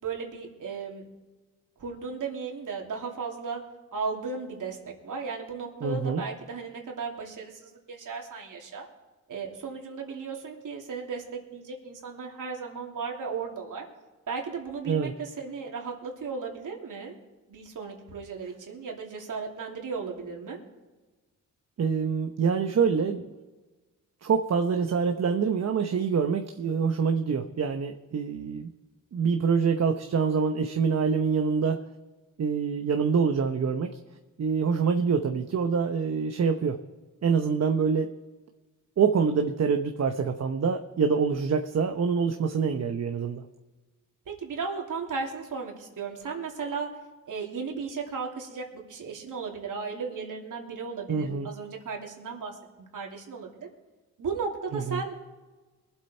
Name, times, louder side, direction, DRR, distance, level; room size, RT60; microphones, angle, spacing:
voice 1, 0.0-1.0 1.8-3.6 3.9-8.8 9.3-13.8 14.3-17.1 17.5-20.6 44.3-46.9 47.3-52.6 52.9-53.7 54.2-55.3, right 5 dB, 70° right, 0 dB, 3.1 m, -35 dB
voice 2, 5.8-6.2 14.9-15.1 21.8-23.3 24.2-28.7 29.1-31.8 32.4-34.0 34.4-36.8 37.2-38.1 39.0-43.4 51.1-51.5 54.7-55.0, right 6 dB, 50° right, 5 dB, 1.0 m, -25 dB
22.5 x 8.0 x 4.4 m, 1.3 s
cardioid pair, 85°, 33 cm